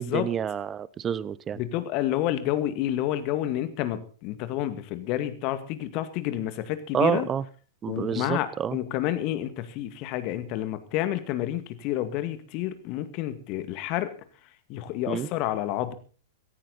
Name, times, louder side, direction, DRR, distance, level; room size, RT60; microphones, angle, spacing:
voice 1, 0.0-1.6 6.9-7.4 7.8-8.8 15.1-15.3, right 8 dB, 25° right, 20 dB, 0.8 m, -28 dB
voice 2, 1.6-7.3 7.9-14.1 14.7-15.9, left 13 dB, 40° left, 11 dB, 2.2 m, -29 dB
17.0 x 15.5 x 4.2 m, 0.39 s
figure-of-eight pair, 100°, 0 cm